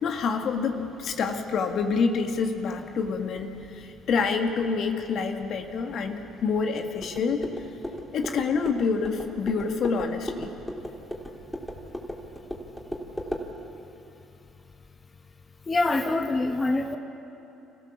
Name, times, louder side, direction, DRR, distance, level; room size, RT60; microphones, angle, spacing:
voice 1, 0.0-7.5 8.1-10.5, left 5 dB, 60° left, 5 dB, 1.8 m, -27 dB
sound 1, 7.0-13.5, equal, 5° left, 3.5 m, -37 dB
voice 2, 15.7-17.0, left 2 dB, 30° left, 5 dB, 1.4 m, -25 dB
27.5 x 15.0 x 7.2 m, 2.9 s
hypercardioid pair, 60°, 0 cm